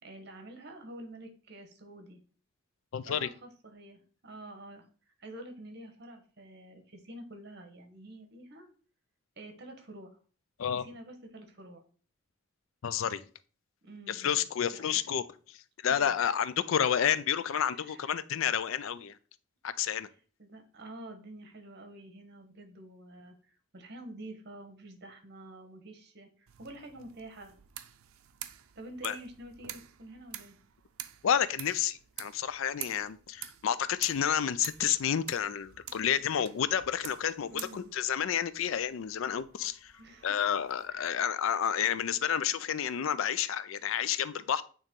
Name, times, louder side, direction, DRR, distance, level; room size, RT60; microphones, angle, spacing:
voice 1, 0.0-2.2 3.1-4.9 5.2-8.7 9.4-10.1 10.8-11.8 13.8-14.4 14.7-15.0 15.8-16.2 17.5-18.2 20.4-27.5 28.7-30.6 37.5-37.9 40.0-40.3 40.9-41.1, right 1 dB, 50° right, 5 dB, 1.1 m, -48 dB
voice 2, 2.9-3.3 10.6-10.9 12.8-13.2 14.1-19.2 19.6-20.1 29.0-29.2 31.2-39.9 40.2-44.6, left 8 dB, 75° left, 15 dB, 0.4 m, -30 dB
sound 1, 26.5-41.1, right 12 dB, 90° right, 0.5 m, -48 dB
8.8 x 3.0 x 3.6 m, 0.40 s
head